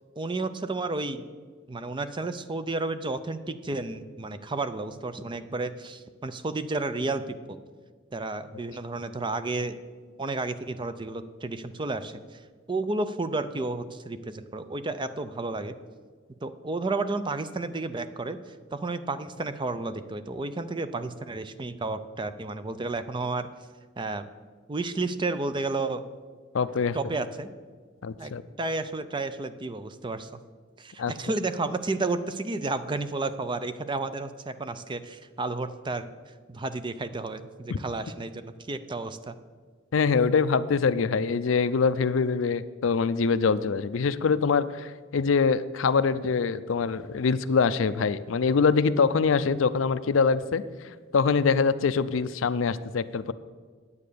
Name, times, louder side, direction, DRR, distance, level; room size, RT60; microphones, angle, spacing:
voice 1, 0.2-1.2 1.7-7.6 8.1-9.8 10.2-12.2 12.7-15.8 16.4-18.4 18.7-23.5 24.0-24.3 24.7-26.0 26.9-27.5 28.2-30.3 30.8-36.1 36.5-39.3, right 3 dB, 25° right, 12 dB, 0.5 m, -32 dB
voice 2, 26.5-27.0 28.0-28.4 31.0-31.1 37.7-37.8 39.9-50.6 51.1-53.3, left 5 dB, 80° left, 14 dB, 0.5 m, -24 dB
9.6 x 8.4 x 6.8 m, 1.5 s
head